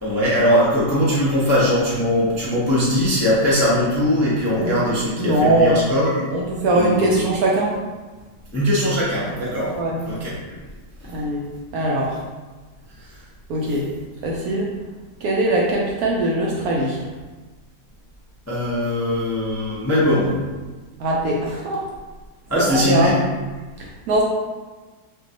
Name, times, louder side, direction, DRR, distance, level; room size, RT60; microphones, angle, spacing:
voice 1, 0.0-6.1 6.7-7.2 8.5-9.8 10.0-10.3 11.0-11.1 13.0-13.2 18.5-20.4 22.5-23.1, left 1 dB, 20° left, -8 dB, 0.4 m, -20 dB
voice 2, 5.2-5.8 6.3-7.8 9.8-10.0 11.0-11.5 11.7-12.2 13.5-13.9 14.2-14.7 15.2-17.1 21.0-21.9 22.6-23.1 23.8-24.2, right 1 dB, 70° right, -2 dB, 0.9 m, -21 dB
5.7 x 2.3 x 2.8 m, 1.3 s
omnidirectional pair, 1.9 m